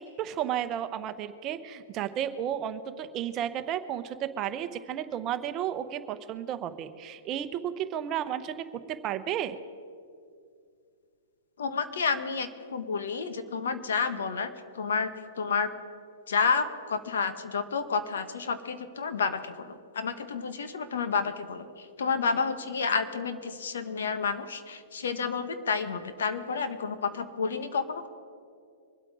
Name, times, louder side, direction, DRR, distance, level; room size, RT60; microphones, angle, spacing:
voice 1, 0.0-9.6, right 10 dB, 30° right, 10 dB, 0.9 m, -33 dB
voice 2, 11.6-15.1 15.4-15.7 16.3-28.1, left 5 dB, 80° left, 10 dB, 1.4 m, -30 dB
24.5 x 8.3 x 4.9 m, 2.3 s
hypercardioid pair, 140°, 0 cm